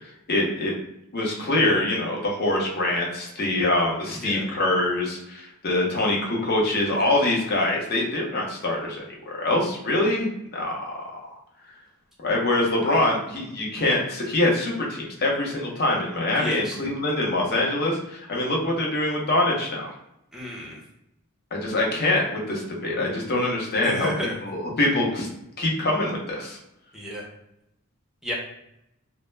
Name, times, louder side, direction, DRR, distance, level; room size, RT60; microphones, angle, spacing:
voice 1, 0.3-0.7 1.1-11.4 12.2-19.9 21.5-24.1 24.4-25.3 25.6-26.6, left 2 dB, 45° left, -2 dB, 0.6 m, -24 dB
voice 2, 16.3-16.8 20.3-20.8 23.8-24.4 26.9-27.3 28.2-28.3, left 1 dB, ahead, -4 dB, 0.5 m, -31 dB
2.1 x 2.1 x 3.1 m, 0.82 s
head